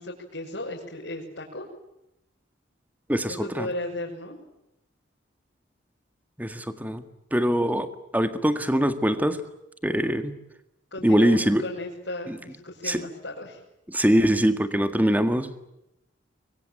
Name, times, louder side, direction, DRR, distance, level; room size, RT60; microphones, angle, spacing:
voice 1, 0.0-1.6 3.3-4.4 10.9-13.6, left 1 dB, 65° left, -4 dB, 6.3 m, -35 dB
voice 2, 3.1-3.7 6.4-7.0 7.3-9.4 9.8-10.4 11.0-11.6 12.3-12.4 12.8-13.0 13.9-15.6, equal, 10° right, 10 dB, 1.8 m, -23 dB
25.0 x 23.5 x 9.1 m, 0.88 s
head